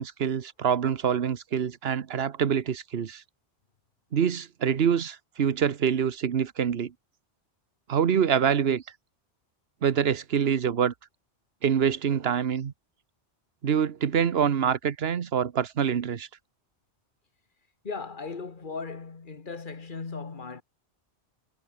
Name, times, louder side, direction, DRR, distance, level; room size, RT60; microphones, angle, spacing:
voice 1, 0.0-3.2 4.1-6.9 7.9-8.8 9.8-10.9 11.6-12.7 13.6-16.3, right 8 dB, 65° right, 1.2 m, -25 dB
voice 2, 17.8-20.6, left 4 dB, 50° left, 1.8 m, -37 dB
omnidirectional pair, 1.1 m